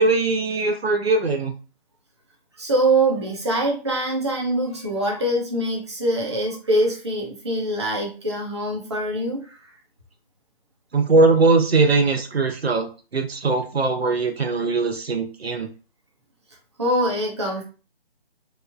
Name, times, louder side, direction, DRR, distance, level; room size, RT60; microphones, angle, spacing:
voice 1, 0.0-1.5 10.9-15.7, right 3 dB, 80° right, 6 dB, 0.6 m, -20 dB
voice 2, 2.6-9.6 16.8-17.6, right 1 dB, 25° right, -1 dB, 0.5 m, -23 dB
3.0 x 2.0 x 2.4 m, 0.34 s
figure-of-eight pair, 150°, 31 cm